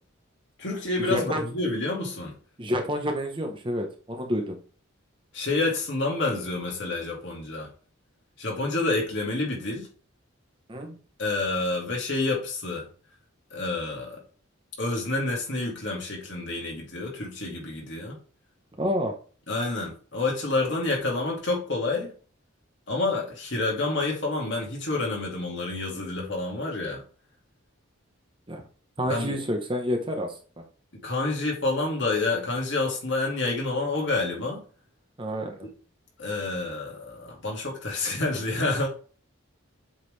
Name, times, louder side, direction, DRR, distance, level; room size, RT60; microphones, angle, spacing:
voice 1, 0.6-2.3 5.3-7.7 8.4-9.9 11.2-12.9 13.5-14.2 14.8-18.2 19.5-22.1 22.9-27.0 29.0-29.4 30.9-34.6 35.6-35.7 36.2-38.9, left 2 dB, 60° left, 2.4 m, -28 dB
voice 2, 1.1-1.4 2.6-4.6 10.7-11.0 18.8-19.1 28.5-28.6 29.0-30.4 35.2-35.7, equal, 25° right, 0.9 m, -28 dB
7.8 x 3.8 x 3.3 m
head